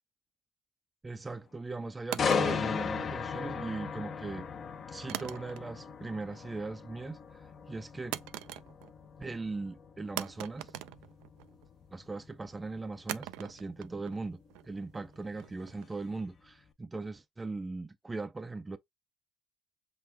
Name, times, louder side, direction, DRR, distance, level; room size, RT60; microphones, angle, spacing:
voice 1, 1.0-4.5 4.9-8.2 9.2-10.7 11.9-18.8, right 3 dB, 15° right, 0.4 m, -39 dB
sound 1, 2.1-3.5 5.1-5.9 6.2-6.7 8.1-9.1 9.3-9.4 10.2-11.7 13.1-16.1, right 16 dB, 90° right, 0.3 m, -42 dB
sound 2, 2.2-16.0 16.4-16.7, left 6 dB, 40° left, 0.6 m, -37 dB
5.8 x 2.2 x 3.2 m
cardioid pair, 110°, 0 cm